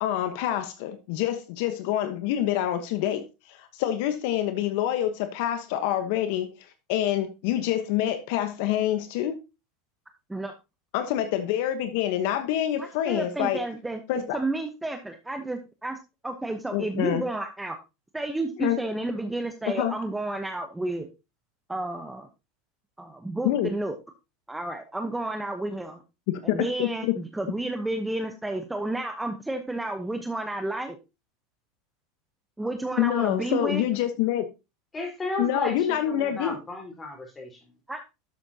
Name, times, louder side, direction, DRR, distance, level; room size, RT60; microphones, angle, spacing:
voice 1, 0.0-6.5 6.9-9.4 10.9-13.6 14.1-14.4 16.7-17.2 18.6-18.8 19.8-19.9 23.4-23.7 26.3-27.1 33.0-34.5 35.4-36.6, left 11 dB, 65° left, 1.1 m, -26 dB
voice 2, 12.8-14.0 14.3-17.8 18.1-21.1 21.7-22.3 23.0-24.0 24.5-26.0 26.4-31.0 32.6-33.8 37.9-38.0, right 2 dB, 5° right, 0.9 m, -31 dB
voice 3, 34.9-37.7, left 2 dB, 15° left, 4.2 m, -34 dB
12.0 x 7.2 x 2.8 m
supercardioid pair, 125°, 0 cm